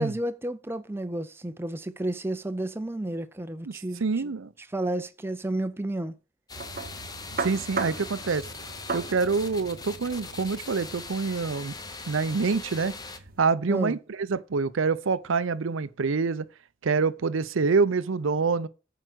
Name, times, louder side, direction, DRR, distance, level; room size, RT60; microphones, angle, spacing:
voice 1, 0.0-4.0 4.7-6.1 13.7-14.0, right 1 dB, 10° right, 0.5 m, -31 dB
voice 2, 3.7-4.5 7.4-8.5 8.9-11.7 12.1-13.0 13.4-16.5 16.8-18.7, right 4 dB, 75° right, 0.6 m, -26 dB
sound 1, 6.5-13.2, left 4 dB, 20° left, 0.8 m, -41 dB
sound 2, 6.5-13.4, right 4 dB, 45° right, 0.8 m, -38 dB
9.1 x 4.8 x 6.0 m
head